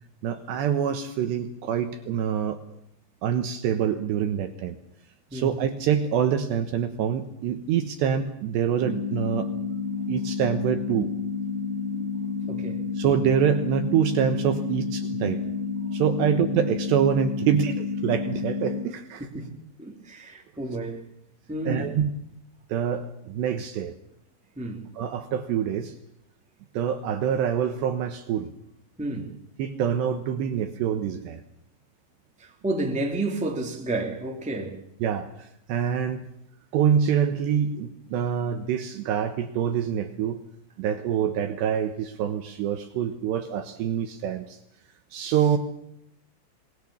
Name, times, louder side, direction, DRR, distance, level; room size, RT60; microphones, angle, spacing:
voice 1, 0.2-2.6 3.2-4.8 5.3-9.5 10.1-11.1 13.0-15.4 15.9-19.3 21.7-22.1 22.7-23.9 25.0-25.9 26.7-28.5 29.6-31.4 35.0-36.2 36.7-40.4 40.8-44.6 45.1-45.6, right 8 dB, 70° right, 3.0 m, -25 dB
sound 1, 8.8-18.8, left 5 dB, 55° left, 5.7 m, -30 dB
voice 2, 12.4-12.8 16.2-16.4 19.3-19.5 19.8-21.0 21.5-22.0 24.5-24.9 29.0-29.4 32.4-34.8 45.2-45.3, right 2 dB, ahead, 2.1 m, -31 dB
25.5 x 20.0 x 7.1 m
omnidirectional pair, 5.8 m